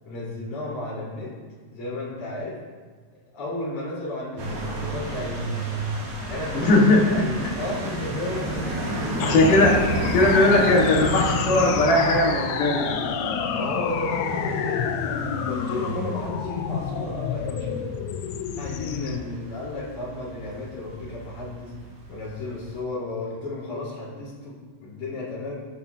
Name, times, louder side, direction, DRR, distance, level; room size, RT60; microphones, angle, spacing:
voice 1, 0.0-1.3 1.7-2.6 3.3-5.6 6.3-9.5 13.5-17.8 18.6-21.7 22.1-25.7, left 2 dB, 45° left, -7 dB, 5.2 m, -33 dB
sound 1, 4.4-22.8, right 1 dB, 60° right, 4.3 m, -32 dB
voice 2, 6.5-7.2 9.2-9.8 10.1-13.4, left 2 dB, 60° left, -2 dB, 2.6 m, -19 dB
sound 2, 9.2-19.2, left 7 dB, 90° left, 3.1 m, -29 dB
13.5 x 13.0 x 2.8 m, 1.4 s
omnidirectional pair, 5.2 m